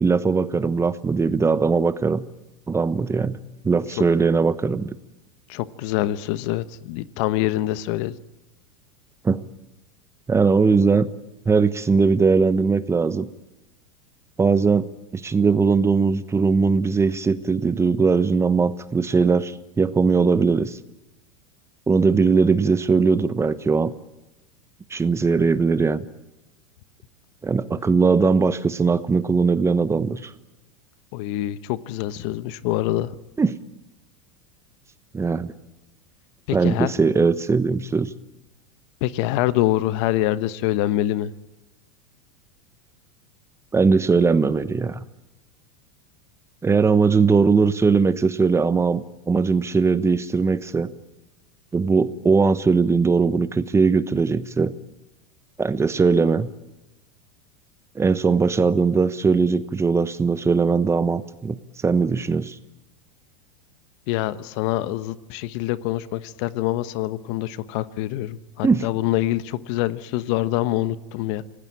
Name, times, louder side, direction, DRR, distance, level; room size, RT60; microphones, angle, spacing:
voice 1, 0.0-2.2 2.7-3.4 3.6-4.9 9.2-9.4 10.3-11.1 11.4-13.3 14.4-14.9 15.1-20.8 21.9-23.9 24.9-26.0 27.4-30.3 33.4-33.6 35.1-35.5 36.5-38.1 43.7-45.0 46.6-50.9 51.7-54.7 55.6-56.5 57.9-61.6 61.8-62.6 68.6-68.8, right 4 dB, 15° right, 14 dB, 1.1 m, -20 dB
voice 2, 5.5-8.2 27.7-27.8 31.1-33.2 36.5-36.9 39.0-41.3 64.1-71.4, left 14 dB, 60° left, 15 dB, 1.2 m, -25 dB
26.5 x 18.0 x 8.7 m, 0.98 s
hypercardioid pair, 105°, 17 cm